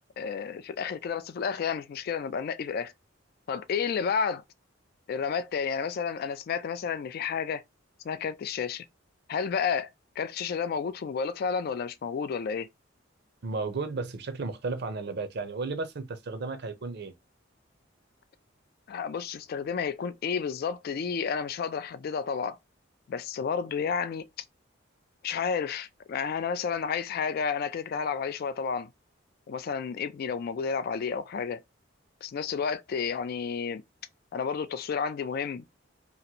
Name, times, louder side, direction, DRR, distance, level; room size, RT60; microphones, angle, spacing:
voice 1, 0.2-2.9 3.5-4.4 5.1-7.6 8.0-8.9 9.3-9.9 10.2-12.7 18.9-22.6 23.1-24.2 25.2-28.9 29.5-31.6 32.2-33.8 34.3-35.6, left 6 dB, 50° left, 0.3 m, -31 dB
voice 2, 13.4-17.1, right 3 dB, 55° right, 0.5 m, -34 dB
2.9 x 2.5 x 2.7 m
head